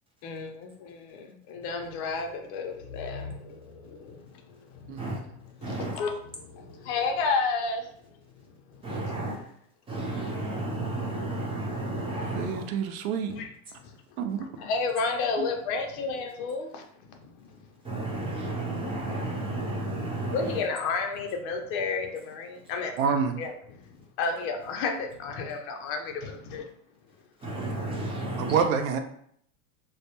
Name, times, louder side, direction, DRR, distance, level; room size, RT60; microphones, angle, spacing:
voice 1, 0.2-4.2 4.9-5.0 5.6-7.9 13.3-13.5 14.4-16.8 17.1-17.2 20.3-23.5 24.2-26.7, left 4 dB, 50° left, 3 dB, 0.6 m, -31 dB
voice 2, 5.6-6.0 8.8-9.3 9.9-12.7 17.8-20.6 27.4-28.6, right 2 dB, 15° right, -4 dB, 0.4 m, -32 dB
voice 3, 12.3-13.3 14.2-14.5 15.4-15.5 23.0-23.4 28.4-29.0, right 6 dB, 70° right, 6 dB, 0.5 m, -27 dB
2.2 x 2.1 x 2.8 m, 0.67 s
supercardioid pair, 125°, 42 cm